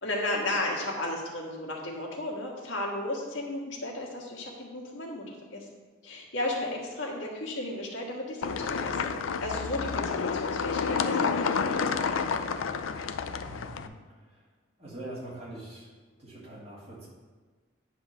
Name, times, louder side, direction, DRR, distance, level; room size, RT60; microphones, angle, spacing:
voice 1, 0.0-5.6 6.0-9.1 9.4-12.2, left 1 dB, 70° left, -2 dB, 1.6 m, -34 dB
sound 1, 8.4-13.9, left 5 dB, 90° left, 0.4 m, -29 dB
voice 2, 13.4-13.9 14.8-15.9 16.2-17.1, right 1 dB, 30° right, -6 dB, 2.1 m, -43 dB
9.7 x 3.7 x 5.9 m, 1.4 s
head